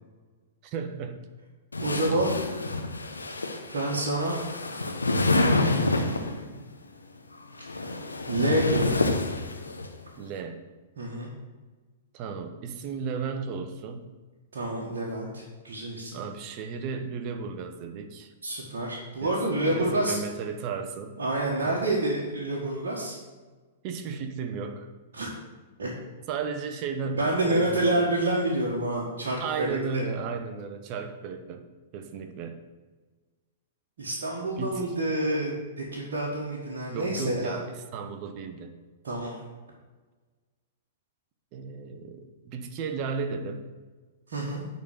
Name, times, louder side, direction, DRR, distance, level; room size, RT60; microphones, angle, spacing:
voice 1, 0.6-1.2 10.2-10.6 12.1-14.1 16.1-18.3 19.2-19.4 19.7-21.2 21.6-21.7 23.8-24.9 26.3-28.1 29.4-31.6 31.9-32.6 34.6-34.8 36.9-38.7 41.5-43.7, right 5 dB, 40° right, 7 dB, 1.0 m, -34 dB
sound 1, 1.7-6.4 7.4-9.9, left 2 dB, 85° left, 0.9 m, -28 dB
voice 2, 1.8-2.3 3.1-3.3 3.7-4.4 5.6-6.6 7.6-7.7 8.3-9.0 11.0-11.3 14.5-16.2 18.4-20.2 21.2-23.2 25.1-25.3 25.8-25.9 27.2-30.0 34.0-37.6 39.0-39.4 44.3-44.6, right 1 dB, 60° right, -4 dB, 1.6 m, -28 dB
10.5 x 4.1 x 6.6 m, 1.3 s
figure-of-eight pair, 105°, 0 cm